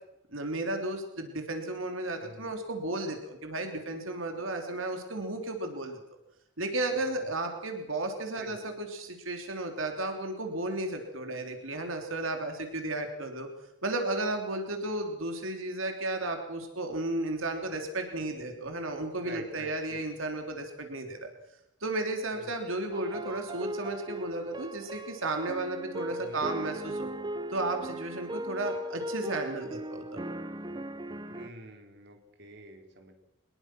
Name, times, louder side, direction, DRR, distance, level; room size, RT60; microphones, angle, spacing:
voice 1, 0.3-6.0 6.6-13.5 13.8-21.3 21.8-27.1 27.5-30.2, right 2 dB, 85° right, 4 dB, 3.3 m, -34 dB
voice 2, 2.2-2.6 8.3-8.7 19.2-20.0 22.3-22.6 26.1-26.4 31.3-33.2, right 2 dB, 55° right, 4 dB, 3.9 m, -47 dB
sound 1, 22.9-31.5, right 1 dB, 20° right, 0.9 m, -38 dB
24.0 x 21.5 x 6.2 m, 0.89 s
head